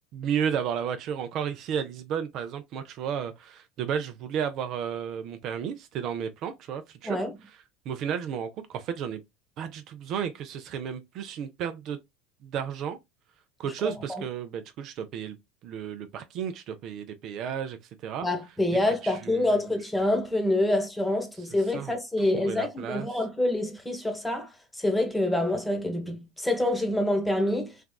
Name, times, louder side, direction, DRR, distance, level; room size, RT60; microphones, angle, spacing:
voice 1, 0.1-7.2 7.9-9.2 9.6-12.0 12.4-13.0 13.6-15.4 15.6-18.3 18.9-19.6 21.7-21.9 22.3-23.1, right 8 dB, 55° right, 0.5 m, -33 dB
voice 2, 13.8-14.2 18.2-27.7, left 1 dB, 5° left, 1.1 m, -27 dB
3.5 x 2.3 x 2.2 m
hypercardioid pair, 90°, 0 cm